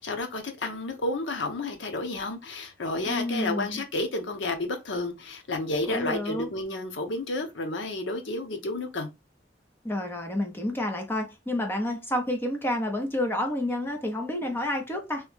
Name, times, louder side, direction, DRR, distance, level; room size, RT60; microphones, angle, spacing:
voice 1, 0.0-9.1, left 2 dB, 75° left, 0.7 m, -31 dB
voice 2, 3.1-3.8 5.9-6.5 9.8-15.3, left 1 dB, 10° left, 0.7 m, -29 dB
3.1 x 2.3 x 3.3 m
head